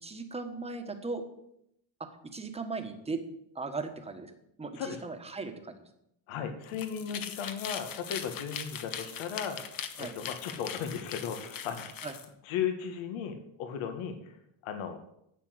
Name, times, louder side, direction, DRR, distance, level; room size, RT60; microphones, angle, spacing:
voice 1, 0.0-1.2 2.2-3.2 3.5-4.3 4.6-5.8 10.0-10.1 12.0-12.1, right 3 dB, 15° right, 5 dB, 1.4 m, -37 dB
voice 2, 6.3-9.6 10.0-11.9 12.5-14.4 14.6-15.0, left 7 dB, 80° left, 7 dB, 1.9 m, -36 dB
sound 1, 6.6-12.3, left 8 dB, 45° left, 1.2 m, -40 dB
11.5 x 8.2 x 8.0 m, 0.77 s
cardioid pair, 165°, 47 cm